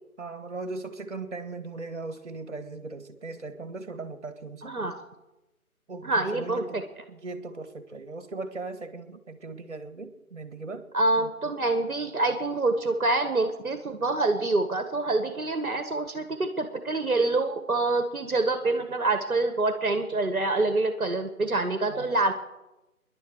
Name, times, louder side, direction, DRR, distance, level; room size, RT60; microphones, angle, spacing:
voice 1, 0.2-4.8 5.9-10.9 21.9-22.2, right 3 dB, 50° right, 9 dB, 2.1 m, -38 dB
voice 2, 4.6-5.0 6.0-6.8 10.9-22.3, right 2 dB, 70° right, 8 dB, 1.7 m, -26 dB
26.5 x 11.5 x 4.8 m, 1.0 s
figure-of-eight pair, 155°, 44 cm